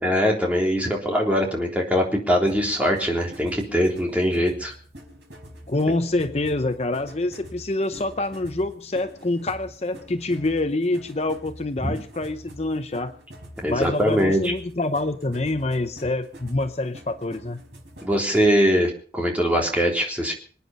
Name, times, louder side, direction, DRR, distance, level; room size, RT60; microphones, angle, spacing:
voice 1, 0.0-4.7 11.8-11.9 13.6-14.5 18.0-20.3, equal, 10° right, 0 dB, 3.6 m, -22 dB
sound 1, 2.4-18.6, equal, 80° right, 5.4 m, -45 dB
voice 2, 5.7-13.2 13.7-17.6, left 2 dB, 35° left, 8 dB, 0.8 m, -26 dB
26.0 x 9.4 x 5.5 m, 0.44 s
head